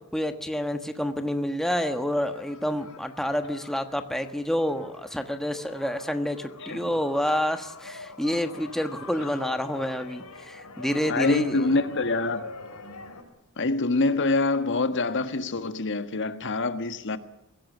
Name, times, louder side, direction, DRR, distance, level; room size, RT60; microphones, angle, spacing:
voice 1, 0.1-11.8, equal, ahead, 1.4 m, -28 dB
sound 1, 1.8-13.2, left 3 dB, 90° left, 4.8 m, -44 dB
voice 2, 11.1-12.4 13.6-17.2, left 3 dB, 55° left, 1.5 m, -25 dB
23.5 x 16.5 x 9.4 m
head